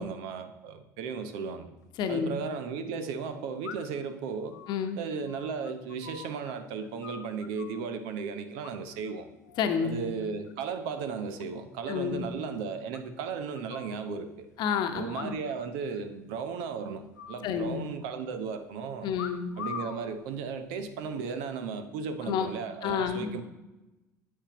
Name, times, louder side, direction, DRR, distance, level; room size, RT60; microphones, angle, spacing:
voice 1, 0.0-1.7 2.1-4.6 4.9-9.3 9.8-14.5 14.9-19.1 19.6-23.4, right 5 dB, 60° right, 9 dB, 0.8 m, -35 dB
sound 1, 1.8-1.9 3.6-4.1 4.5-6.5 6.8-7.8 8.6-9.1 9.4-9.8 10.2-10.8 11.0-11.1 11.4-11.5 11.8-11.9 12.2-12.3 12.9-14.0 15.0-15.7 15.9-16.0 16.3-16.7 17.1-18.1 19.1-20.0 20.8-21.1, left 7 dB, 80° left, 0.6 m, -44 dB
voice 2, 2.0-2.3 4.7-5.0 9.6-10.2 11.9-12.3 14.6-15.4 17.4-17.8 19.0-19.5 22.2-22.5 22.8-23.4, left 7 dB, 50° left, 7 dB, 1.0 m, -30 dB
10.0 x 8.4 x 2.9 m, 1.0 s
figure-of-eight pair, 65°, 10 cm